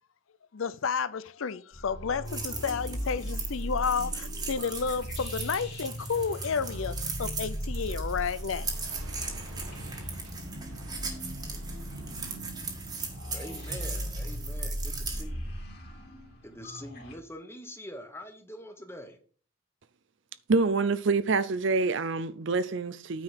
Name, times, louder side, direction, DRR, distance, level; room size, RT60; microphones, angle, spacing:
voice 1, 0.5-8.7, left 6 dB, 70° left, 0.5 m, -31 dB
sound 1, 1.7-17.1, equal, 50° left, 2.8 m, -38 dB
sound 2, 2.3-15.2, right 4 dB, 20° right, 1.6 m, -39 dB
sound 3, 3.5-12.4, right 2 dB, 90° right, 1.6 m, -51 dB
voice 2, 13.3-15.5 16.4-19.2, equal, 10° left, 1.2 m, -44 dB
voice 3, 20.5-23.2, right 4 dB, 55° right, 0.6 m, -26 dB
9.2 x 5.0 x 5.7 m
head